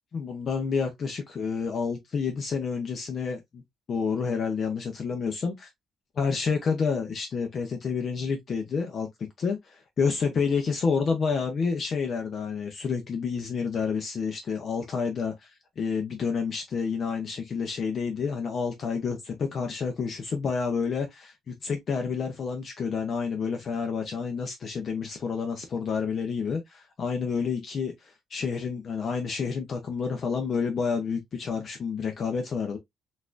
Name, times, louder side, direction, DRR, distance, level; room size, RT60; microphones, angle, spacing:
voice 1, 0.1-3.6 3.9-5.7 6.2-32.8, left 5 dB, 40° left, 0.6 m, -29 dB
4.0 x 2.4 x 2.4 m
cardioid pair, 150°, 0 cm